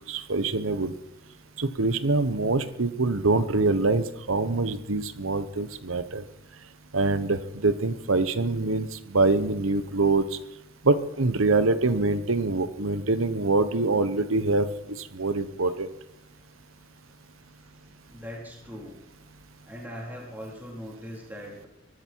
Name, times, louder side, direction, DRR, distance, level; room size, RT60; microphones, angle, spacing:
voice 1, 0.1-0.9 1.6-6.2 6.9-10.2 10.8-14.7 15.0-15.9, right 3 dB, 90° right, 12 dB, 1.1 m, -24 dB
voice 2, 18.1-19.0 19.6-21.7, equal, 10° right, -3 dB, 4.0 m, -40 dB
24.0 x 13.0 x 4.7 m, 0.92 s
head